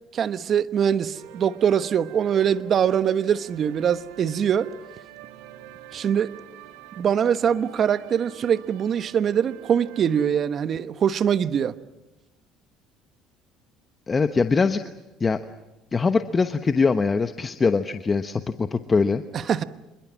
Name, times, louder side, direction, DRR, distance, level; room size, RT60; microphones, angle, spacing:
voice 1, 0.1-4.7 5.9-6.3 7.0-11.7 19.3-19.6, right 8 dB, 50° right, 13 dB, 1.1 m, -23 dB
Orchestral Adventure Theme, 1.1-10.4, right 12 dB, 80° right, 1.9 m, -46 dB
voice 2, 14.1-14.8 15.2-15.4 15.9-19.2, left 4 dB, 30° left, 9 dB, 1.1 m, -22 dB
26.5 x 22.0 x 7.5 m, 1.0 s
supercardioid pair, 75°, 0 cm